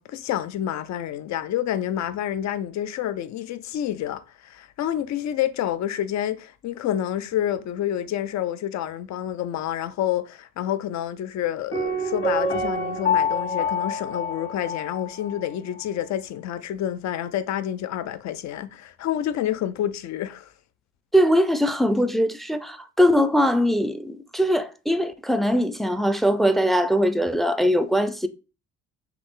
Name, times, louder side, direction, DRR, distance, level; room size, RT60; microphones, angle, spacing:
voice 1, 0.0-20.5, left 11 dB, 65° left, 0.6 m, -28 dB
Piano, 11.7-15.5 15.7-15.8, left 3 dB, 40° left, 1.9 m, -26 dB
voice 2, 21.1-28.3, equal, ahead, 0.4 m, -21 dB
5.9 x 2.3 x 3.6 m
cardioid pair, 90°, 30 cm